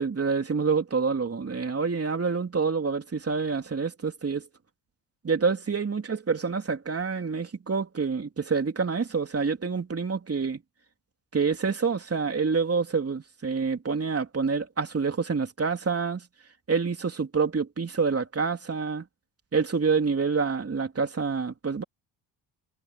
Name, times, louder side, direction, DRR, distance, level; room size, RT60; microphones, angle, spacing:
voice 1, 0.0-4.5 5.2-10.6 11.3-16.3 16.7-19.1 19.5-21.8, right 5 dB, 30° right, 3.4 m, -27 dB
supercardioid pair, 70°, 45 cm